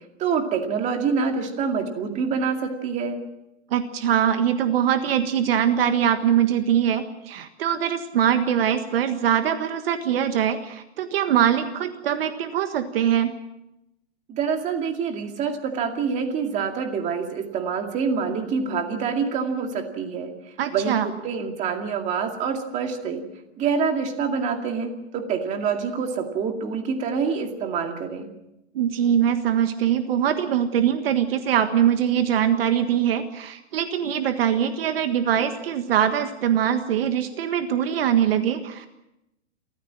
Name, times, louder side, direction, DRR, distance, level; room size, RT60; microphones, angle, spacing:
voice 1, 0.2-3.2 14.3-20.3 20.7-23.2 23.6-28.3, right 5 dB, 20° right, 4 dB, 2.3 m, -26 dB
voice 2, 3.7-13.3 20.6-21.1 28.7-38.9, right 9 dB, 55° right, 8 dB, 1.6 m, -22 dB
28.5 x 14.5 x 7.6 m, 0.89 s
hypercardioid pair, 160°, 35 cm